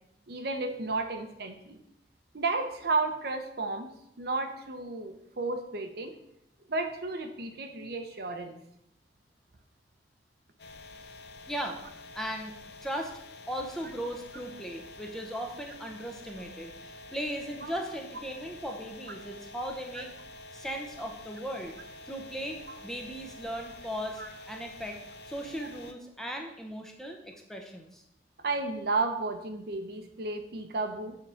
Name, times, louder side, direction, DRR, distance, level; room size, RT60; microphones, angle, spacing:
voice 1, 0.3-1.8 2.3-3.9 4.2-6.1 6.7-8.6 17.6-17.7 19.9-20.0 24.2-24.3 28.4-31.2, right 3 dB, 60° right, 6 dB, 0.8 m, -32 dB
sound 1, 10.6-25.9, left 2 dB, 65° left, 0.6 m, -48 dB
voice 2, 11.5-11.8 12.1-12.5 12.8-13.1 13.5-20.1 20.5-21.8 22.1-25.0 25.3-28.0, equal, 5° left, 2 dB, 0.8 m, -37 dB
7.1 x 3.8 x 5.7 m, 0.78 s
head